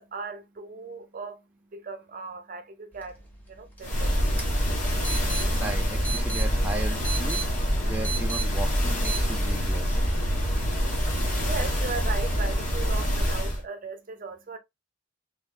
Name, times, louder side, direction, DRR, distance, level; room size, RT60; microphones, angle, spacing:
voice 1, 0.0-4.5 10.6-14.6, right 4 dB, 50° right, 0.7 m, -38 dB
sound 1, 2.9-9.2, right 5 dB, 10° left, 1.0 m, -38 dB
sound 2, 3.8-13.6, equal, 45° left, 1.4 m, -26 dB
voice 2, 5.5-10.0, right 2 dB, 10° right, 0.5 m, -37 dB
3.6 x 3.2 x 2.3 m
head